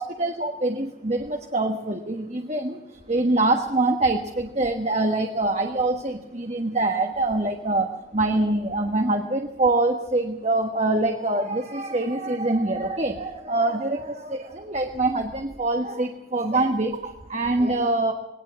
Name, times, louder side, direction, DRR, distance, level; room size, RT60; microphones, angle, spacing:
voice 1, 0.0-18.1, right 2 dB, 35° right, 4 dB, 1.4 m, -24 dB
20.5 x 18.0 x 7.6 m, 0.90 s
head